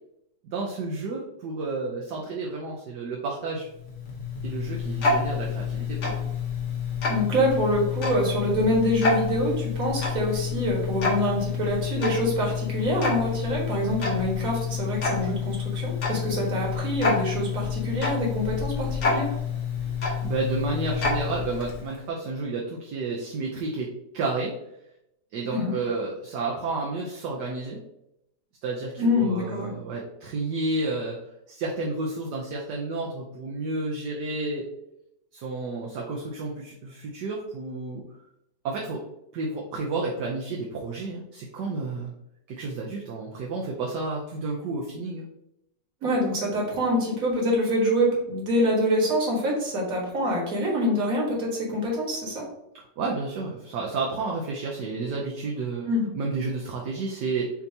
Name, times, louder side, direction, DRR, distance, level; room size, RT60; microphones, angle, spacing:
voice 1, 0.5-3.7 4.4-6.3 20.2-24.5 25.3-27.8 28.6-31.2 31.5-34.7 35.3-38.0 38.6-39.0 39.3-42.1 42.5-45.3 52.7-55.9 56.1-57.5, right 3 dB, 75° right, -2 dB, 1.3 m, -31 dB
Tick-tock, 3.7-22.0, left 5 dB, 50° left, 1.2 m, -28 dB
voice 2, 7.1-19.3 25.5-25.7 29.0-29.7 46.0-52.4 55.9-56.1, equal, 55° right, -2 dB, 1.8 m, -25 dB
6.6 x 2.8 x 2.7 m, 0.82 s
omnidirectional pair, 1.9 m